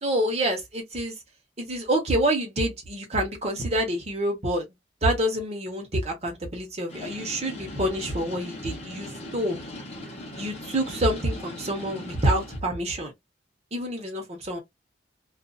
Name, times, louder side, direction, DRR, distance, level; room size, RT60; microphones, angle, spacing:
voice 1, 0.0-1.1 1.6-4.6 5.0-9.6 10.4-13.1 13.7-14.6, right 1 dB, 35° right, 1.0 m, -27 dB
sound 1, 6.9-12.6, left 1 dB, 35° left, 0.9 m, -40 dB
2.5 x 2.5 x 2.3 m
head